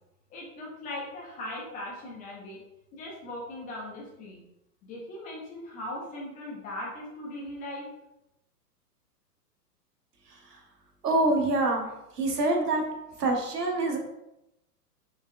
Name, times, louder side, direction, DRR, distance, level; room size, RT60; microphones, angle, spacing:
voice 1, 0.3-2.6 2.9-4.4 4.8-7.9, left 1 dB, 15° left, -3 dB, 0.7 m, -39 dB
voice 2, 10.3-10.6 11.0-11.9 12.1-12.8 13.2-14.0, right 2 dB, 75° right, 2 dB, 1.1 m, -26 dB
4.6 x 3.3 x 2.2 m, 0.88 s
figure-of-eight pair, 115°, 48 cm